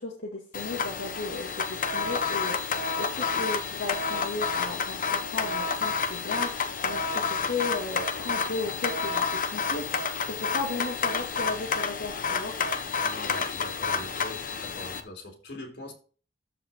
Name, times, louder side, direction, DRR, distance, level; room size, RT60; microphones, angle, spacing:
voice 1, 0.0-12.5, left 3 dB, 85° left, -4 dB, 2.2 m, -35 dB
sound 1, 0.5-15.0, left 5 dB, 50° left, 0.9 m, -30 dB
voice 2, 13.0-15.9, left 2 dB, 65° left, 0 dB, 3.8 m, -42 dB
13.5 x 4.9 x 3.7 m, 0.38 s
head